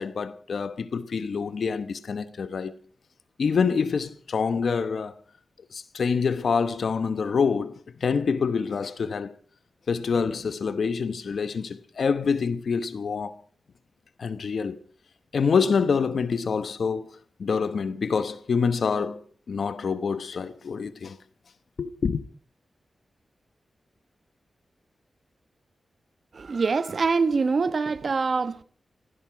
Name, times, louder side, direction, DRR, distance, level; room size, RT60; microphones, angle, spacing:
voice 1, 0.0-2.7 3.4-5.1 5.7-9.3 9.9-13.3 14.2-14.8 15.3-17.1 17.4-19.2 19.5-21.2 21.8-22.2, left 5 dB, 70° left, 0.9 m, -26 dB
voice 2, 26.3-28.6, right 4 dB, 55° right, 1.0 m, -24 dB
17.0 x 16.0 x 5.0 m
wide cardioid pair, 95°, 0 cm